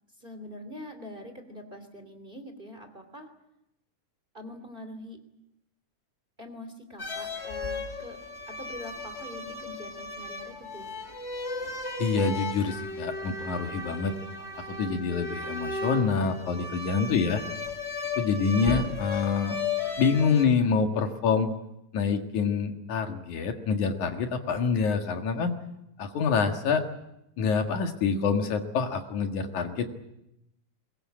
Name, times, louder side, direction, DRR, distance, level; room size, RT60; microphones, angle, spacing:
voice 1, 0.2-3.3 4.3-5.2 6.4-8.2 8.5-11.2 18.1-18.4, left 1 dB, 15° right, 7 dB, 2.7 m, -44 dB
sound 1, 7.0-20.4, left 3 dB, 25° left, 2.3 m, -35 dB
voice 2, 12.0-14.2 14.7-17.4 18.2-19.6 20.0-21.5 21.9-25.5 26.0-26.8 27.4-30.0, left 5 dB, 75° left, 5 dB, 3.2 m, -26 dB
22.5 x 21.5 x 8.7 m, 0.85 s
omnidirectional pair, 3.5 m